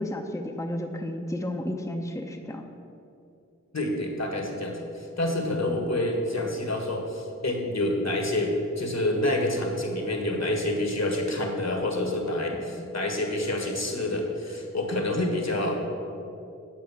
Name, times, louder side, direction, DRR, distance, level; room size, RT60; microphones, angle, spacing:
voice 1, 0.0-2.6, left 1 dB, 10° left, 2 dB, 0.7 m, -32 dB
voice 2, 3.7-15.8, left 1 dB, 65° left, 2 dB, 1.6 m, -28 dB
9.1 x 5.1 x 7.0 m, 2.7 s
wide cardioid pair, 45°, 30 cm